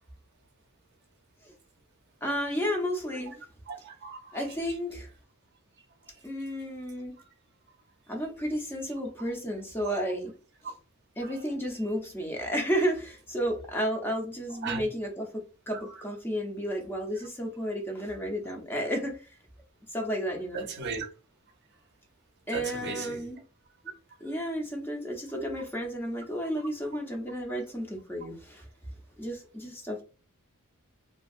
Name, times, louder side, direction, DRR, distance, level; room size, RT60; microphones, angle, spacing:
voice 1, 2.2-3.4 4.3-5.1 6.2-7.2 8.1-10.3 11.2-19.3 19.9-20.7 22.5-23.4 24.2-28.6 29.2-30.0, equal, 10° left, 0.5 m, -32 dB
voice 2, 3.7-4.4 14.6-14.8 20.5-21.1 22.5-23.2, right 5 dB, 50° right, 0.5 m, -36 dB
2.8 x 2.5 x 2.3 m
head